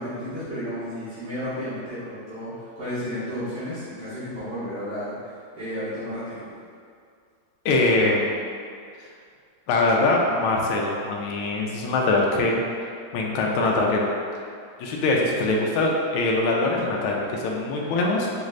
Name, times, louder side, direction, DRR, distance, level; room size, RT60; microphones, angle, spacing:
voice 1, 0.0-6.5 17.8-18.3, equal, 55° right, -16 dB, 2.0 m, -33 dB
voice 2, 7.6-8.4 9.7-12.6 13.1-14.0 14.8-18.3, left 2 dB, 85° left, -1 dB, 1.4 m, -22 dB
6.0 x 2.5 x 3.1 m, 2.2 s
omnidirectional pair, 2.2 m